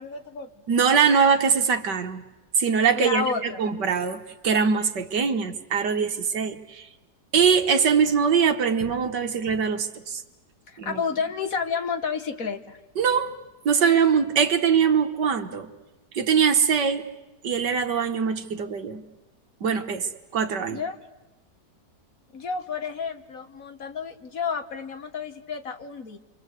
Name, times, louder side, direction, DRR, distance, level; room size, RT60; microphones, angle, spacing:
voice 1, 0.0-0.5 2.9-3.6 10.7-12.8 20.7-21.0 22.3-26.2, left 6 dB, 55° left, 8 dB, 1.7 m, -30 dB
voice 2, 0.7-2.2 2.6-6.9 7.3-10.2 10.8-11.0 13.0-13.3 13.7-15.7 16.1-17.0 17.4-19.0 19.6-20.8, right 6 dB, 75° right, 7 dB, 2.1 m, -22 dB
29.0 x 24.0 x 8.2 m, 1.1 s
omnidirectional pair, 1.9 m